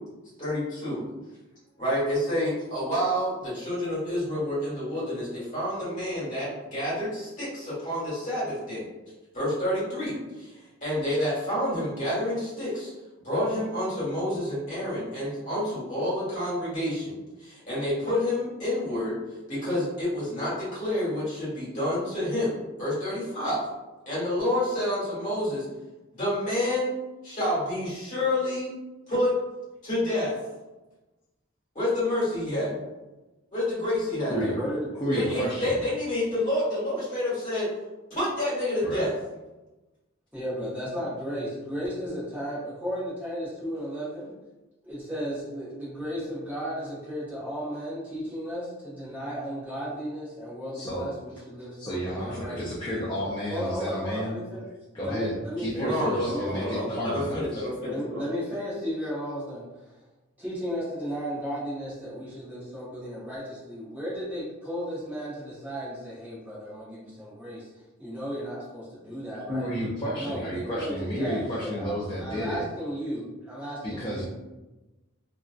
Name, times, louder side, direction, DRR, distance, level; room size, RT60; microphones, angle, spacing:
voice 1, 0.4-1.1 1.8-8.8 9.3-10.5 10.8-12.9 13.2-19.1 19.5-23.6 24.1-25.6 26.1-26.9 27.2-28.7 29.1-29.3 29.8-30.3 31.7-32.7 33.5-34.5 35.1-37.7 38.1-39.1 55.8-58.2, left 1 dB, 40° left, -9 dB, 1.3 m, -28 dB
voice 2, 34.2-34.9 40.3-44.3 44.8-52.6 52.8-53.1 53.5-54.7 55.0-55.9 56.2-56.9 57.8-60.0 60.4-67.7 68.0-69.7 70.1-71.9 72.2-74.2, equal, 10° right, -10 dB, 0.7 m, -34 dB
voice 3, 34.9-35.8 38.8-39.0 50.7-51.1 51.8-54.4 54.9-57.7 69.5-72.6 73.8-74.2, equal, 20° left, -7 dB, 0.4 m, -31 dB
2.5 x 2.1 x 2.3 m, 1.1 s
head